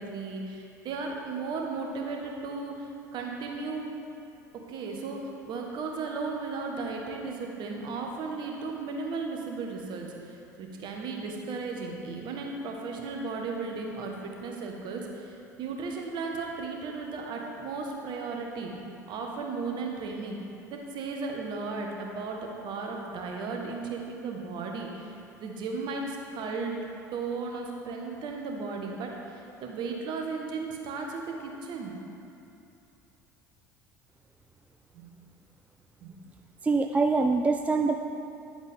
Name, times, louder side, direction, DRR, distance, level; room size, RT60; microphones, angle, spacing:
voice 1, 0.0-3.9 4.7-18.7 19.1-20.4 20.7-26.8 27.1-31.9 34.9-35.1 36.0-36.1, right 4 dB, 50° right, 1 dB, 1.3 m, -35 dB
voice 2, 36.6-38.1, right 3 dB, 15° right, 5 dB, 0.4 m, -24 dB
10.0 x 8.0 x 3.6 m, 2.8 s
figure-of-eight pair, 65°, 10 cm